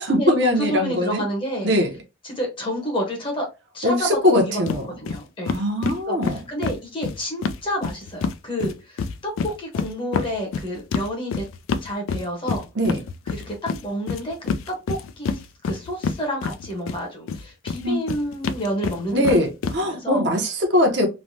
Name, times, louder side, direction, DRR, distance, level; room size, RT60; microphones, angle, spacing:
voice 1, 0.0-1.2 1.6-2.0 3.8-4.9 5.5-6.4 12.8-13.0 17.8-18.0 19.1-21.1, left 1 dB, 55° right, 0.6 m, -21 dB
voice 2, 0.6-1.7 2.2-3.5 3.7-4.6 5.0-5.6 6.1-11.4 11.8-12.7 13.3-14.4 14.7-19.4 19.8-20.2, equal, 25° left, 0.8 m, -29 dB
sound 1, 4.7-4.8 5.1-5.2 5.5-8.4 8.6-17.0 17.3-19.8, left 5 dB, 85° left, 0.3 m, -27 dB
3.1 x 2.1 x 2.6 m
head